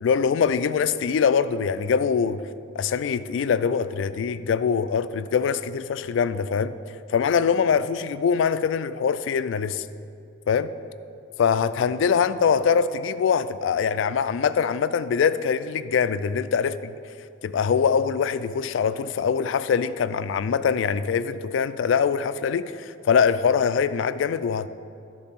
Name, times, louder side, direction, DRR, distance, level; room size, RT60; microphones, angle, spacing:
voice 1, 0.0-2.4 2.8-6.8 7.1-9.9 10.5-10.7 11.4-17.0 17.4-24.7, left 6 dB, 70° left, 0.3 m, -23 dB
12.0 x 4.0 x 5.7 m
head